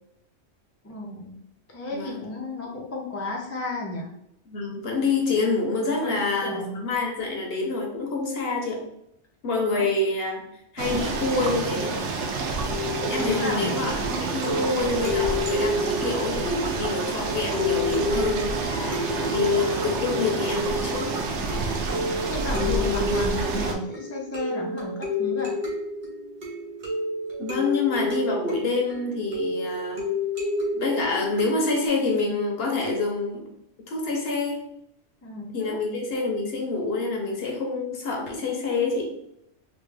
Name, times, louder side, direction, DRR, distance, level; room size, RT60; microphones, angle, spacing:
voice 1, 0.8-1.4 1.7-4.1 5.8-6.8 9.7-9.8 13.2-13.8 22.3-25.6 35.2-35.8, left 2 dB, 20° left, -2 dB, 0.4 m, -33 dB
voice 2, 4.5-8.8 9.4-10.4 10.7-12.0 13.1-13.9 14.3-21.1 27.4-30.1 30.7-33.5 33.9-34.6 35.5-39.1, left 3 dB, 55° left, 0 dB, 0.9 m, -27 dB
sound 1, 10.8-23.8, right 3 dB, 75° right, 0.8 m, -29 dB
sound 2, 12.7-31.9, left 2 dB, 50° right, 1.2 m, -30 dB
3.2 x 2.4 x 3.3 m, 0.77 s
omnidirectional pair, 1.3 m